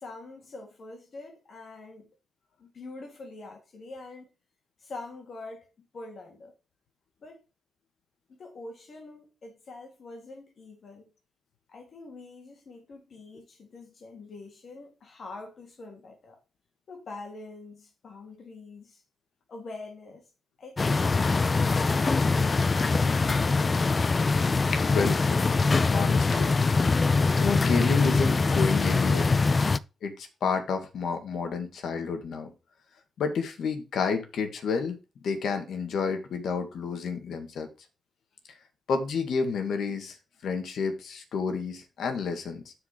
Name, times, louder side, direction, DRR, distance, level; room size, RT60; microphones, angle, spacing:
voice 1, 0.0-2.1 2.6-4.3 4.8-6.5 7.2-7.4 8.3-11.1 11.7-16.4 16.9-19.0 19.5-20.3 20.6-22.3, left 3 dB, 60° left, 2.9 m, -44 dB
sound 1, 20.8-29.8, left 4 dB, 35° left, 0.6 m, -23 dB
voice 2, 24.7-25.4 25.9-26.5 27.4-29.4 30.0-32.5 33.2-35.0 35.2-37.7 38.9-40.2 40.4-42.7, left 5 dB, 80° left, 1.9 m, -30 dB
9.6 x 5.0 x 5.2 m
cardioid pair, 70°, 0 cm